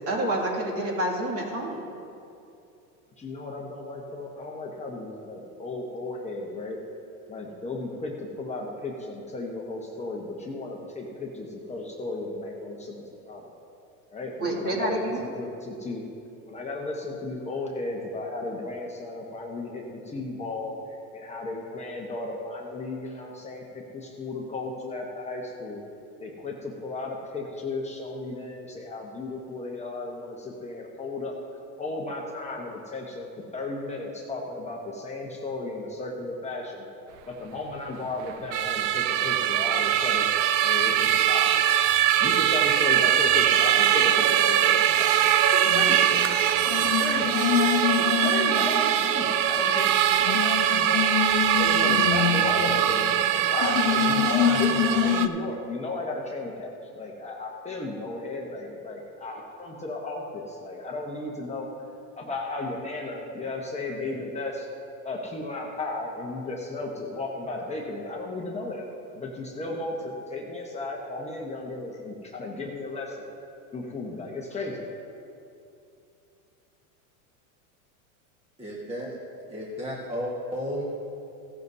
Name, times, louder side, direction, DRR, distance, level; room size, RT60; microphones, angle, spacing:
voice 1, 0.1-1.8 14.4-15.2, right 1 dB, 35° right, -2 dB, 2.4 m, -28 dB
voice 2, 3.2-6.8 7.3-13.5 14.1-16.0 16.5-25.8 26.2-31.4 31.8-36.9 37.3-40.3 40.6-41.7 42.2-46.3 46.6-47.4 48.0-50.0 50.2-51.1 51.6-61.7 62.2-64.7 65.0-68.9 69.1-73.3 73.7-74.8, left 2 dB, 15° left, -2 dB, 1.1 m, -35 dB
sound 1, 38.5-55.3, right 11 dB, 60° right, 0.7 m, -22 dB
sound 2, 45.7-46.4 46.7-49.3 49.6-49.7 50.1-53.2 53.6-55.3, left 11 dB, 85° left, 0.9 m, -27 dB
voice 3, 78.6-79.2 79.5-80.8, equal, 15° right, -4 dB, 1.5 m, -33 dB
16.0 x 12.0 x 2.7 m, 2.7 s
supercardioid pair, 125°, 43 cm